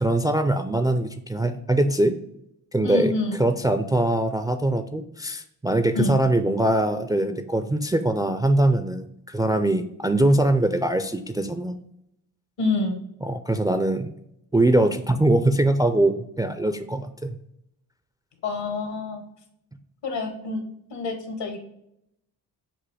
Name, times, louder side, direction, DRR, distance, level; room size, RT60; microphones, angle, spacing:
voice 1, 0.0-2.1 2.7-3.1 3.4-11.8 13.2-14.1 14.5-17.4, right 1 dB, 10° right, 8 dB, 0.3 m, -22 dB
voice 2, 2.8-3.4 5.9-6.2 12.6-13.0 18.4-19.2 20.0-20.6 20.9-21.6, left 3 dB, 70° left, 5 dB, 1.2 m, -27 dB
6.1 x 2.6 x 3.3 m, 0.78 s
supercardioid pair, 45°, 44 cm